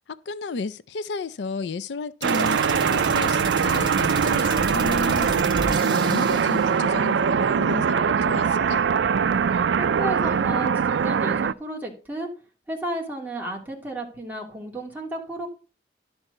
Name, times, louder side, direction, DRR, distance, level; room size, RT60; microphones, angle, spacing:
voice 1, 0.1-8.8, left 4 dB, 75° left, 0.4 m, -33 dB
sound 1, 2.2-6.7, right 2 dB, 25° right, 2.3 m, -32 dB
sound 2, 2.2-11.5, right 6 dB, 85° right, 0.4 m, -22 dB
voice 2, 9.7-12.3 12.7-15.5, right 1 dB, 10° right, 2.6 m, -33 dB
11.5 x 4.5 x 6.6 m
head